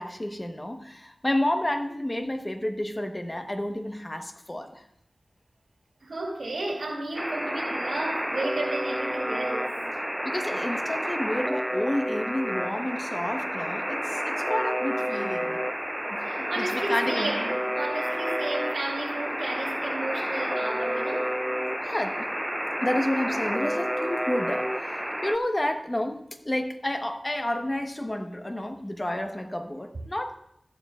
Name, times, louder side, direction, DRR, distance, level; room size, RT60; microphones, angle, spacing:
voice 1, 0.0-4.8 10.2-15.7 16.1-17.3 21.8-22.3 22.8-30.4, left 1 dB, 25° left, 1.1 m, -30 dB
voice 2, 6.0-9.8 16.2-21.3, right 2 dB, 75° right, 2.8 m, -33 dB
Alarm, 7.1-25.4, equal, 5° right, 0.4 m, -30 dB
14.0 x 11.5 x 2.4 m
wide cardioid pair, 55°, 0 cm